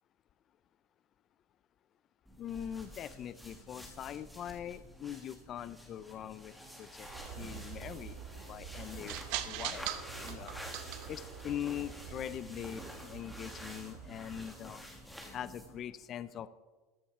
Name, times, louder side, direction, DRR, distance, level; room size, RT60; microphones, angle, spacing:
sound 1, 2.3-15.8, equal, ahead, 1.3 m, -50 dB
voice 1, 2.4-7.1 7.4-8.2 8.5-10.6 11.1-14.8 15.3-16.5, left 10 dB, 25° left, 16 dB, 0.3 m, -42 dB
sound 2, 7.0-14.4, right 11 dB, 45° right, 0.8 m, -44 dB
sound 3, 7.1-12.3, right 5 dB, 75° right, 2.0 m, -53 dB
13.5 x 7.2 x 5.8 m, 1.3 s
supercardioid pair, 175°, 0 cm